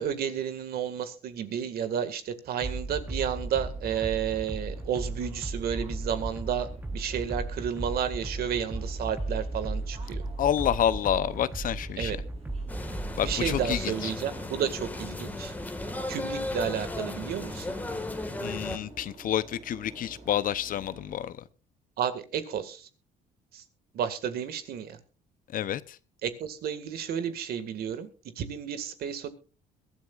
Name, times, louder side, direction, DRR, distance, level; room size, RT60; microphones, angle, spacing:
voice 1, 0.0-10.2 12.0-12.2 13.2-15.5 16.1-17.7 22.0-22.9 23.5-23.6 23.9-25.0 26.2-28.1 28.4-29.3, right 8 dB, 65° right, 2.0 m, -32 dB
sound 1, 2.6-13.9, right 2 dB, 10° right, 1.1 m, -35 dB
sound 2, 3.0-21.2, right 2 dB, 35° right, 5.8 m, -49 dB
voice 2, 10.4-12.2 13.2-14.1 18.4-21.4 25.5-26.0, left 10 dB, 55° left, 0.8 m, -29 dB
sound 3, 12.7-18.8, left 2 dB, 10° left, 1.8 m, -35 dB
22.5 x 13.0 x 2.5 m
cardioid pair, 110°, 17 cm